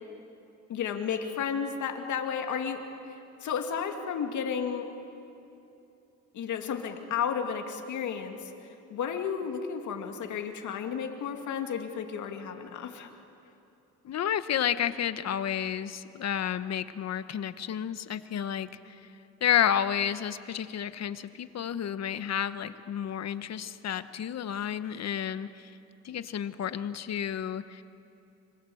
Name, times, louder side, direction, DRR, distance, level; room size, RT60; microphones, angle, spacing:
voice 1, 0.7-2.8 3.4-4.9 6.3-8.5 8.9-13.1, left 7 dB, 75° left, 4 dB, 2.5 m, -32 dB
voice 2, 14.0-19.0 19.4-25.7 26.0-27.8, left 9 dB, 60° left, 12 dB, 1.1 m, -31 dB
26.0 x 25.0 x 7.9 m, 2.8 s
cardioid pair, 90°, 30 cm